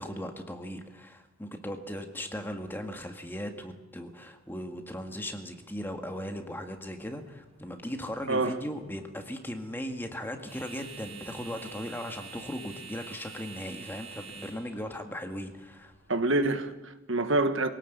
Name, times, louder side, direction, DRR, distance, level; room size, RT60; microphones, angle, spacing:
voice 1, 0.0-15.9, equal, 10° left, 1.8 m, -38 dB
sound 1, 5.3-16.6, right 5 dB, 30° right, 7.4 m, -49 dB
voice 2, 16.1-17.7, right 2 dB, 60° right, 1.5 m, -26 dB
24.0 x 18.0 x 8.1 m
head